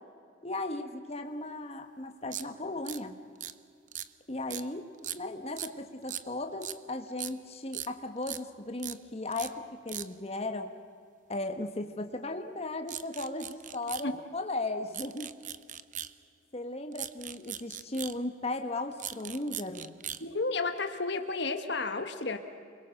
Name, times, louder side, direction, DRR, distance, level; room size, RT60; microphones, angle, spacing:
voice 1, 0.4-3.2 4.3-10.7 11.3-15.3 16.5-19.9, left 2 dB, 30° left, 5 dB, 1.5 m, -36 dB
sound 1, 2.3-2.5 2.9-3.0 3.4-3.5 3.9-4.1 4.5-4.6 5.0-5.2 5.6-5.7 6.1-6.2 6.6-6.8 7.2-7.3 7.7-7.9 8.2-8.4 8.8-9.0 9.3-9.5 9.9-10.1 12.9-14.1 14.9-16.1 16.9-18.2 18.9-20.2, right 11 dB, 40° right, 0.8 m, -39 dB
voice 2, 20.2-22.4, left 3 dB, 60° left, 7 dB, 1.4 m, -32 dB
29.0 x 22.0 x 6.6 m, 2.3 s
head